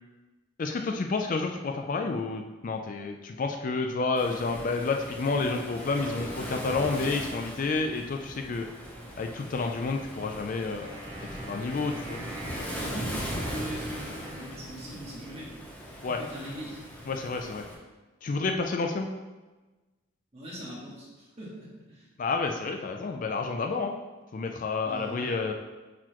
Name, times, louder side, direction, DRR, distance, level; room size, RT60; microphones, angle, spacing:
voice 1, 0.6-8.7 9.2-10.9 11.4-12.7 16.0-16.2 17.1-17.6 18.2-19.1 22.2-23.9 24.3-25.5, left 3 dB, 40° left, 4 dB, 0.4 m, -30 dB
Waves surf, 4.2-17.8, equal, 5° left, 0.8 m, -39 dB
Wind instrument woodwind instrument, 10.8-15.2, right 1 dB, 75° right, 1.6 m, -45 dB
voice 2, 12.6-15.5 16.0-16.8 20.3-22.0 24.8-25.3, right 1 dB, 30° right, -6 dB, 1.7 m, -41 dB
8.7 x 4.1 x 3.0 m, 1.2 s
head